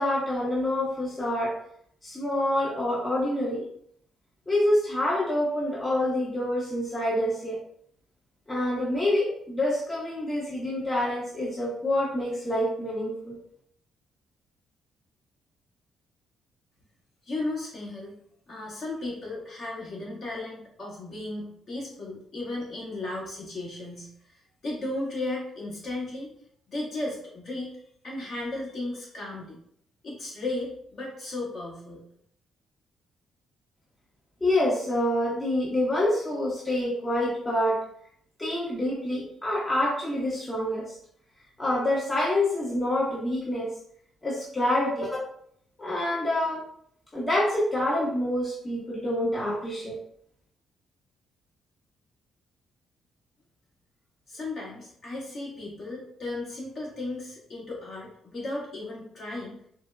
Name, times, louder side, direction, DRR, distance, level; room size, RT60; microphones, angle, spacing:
voice 1, 0.0-1.5 2.0-3.6 4.5-7.6 8.5-13.3 34.4-37.8 38.4-40.9 41.6-43.7 44.2-45.2 45.8-46.6 47.1-50.0, left 1 dB, 20° left, -6 dB, 0.8 m, -27 dB
voice 2, 17.2-18.1 18.5-26.3 26.7-27.7 28.0-29.6 30.0-32.0 54.3-59.6, left 2 dB, 55° left, -5 dB, 1.5 m, -35 dB
4.1 x 2.1 x 2.3 m, 0.67 s
cardioid pair, 90°, 0 cm